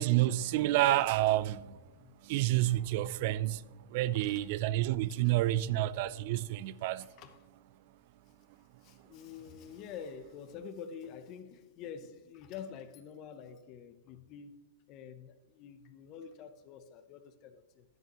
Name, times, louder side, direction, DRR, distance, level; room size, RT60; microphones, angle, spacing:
voice 1, 0.0-1.8 2.2-7.1, right 15 dB, 50° right, 0.4 m, -29 dB
voice 2, 4.1-4.5 7.0-7.4 8.8-14.6 14.9-17.8, left 7 dB, 35° left, 0.7 m, -47 dB
10.5 x 8.9 x 3.0 m
hypercardioid pair, 135°, 0 cm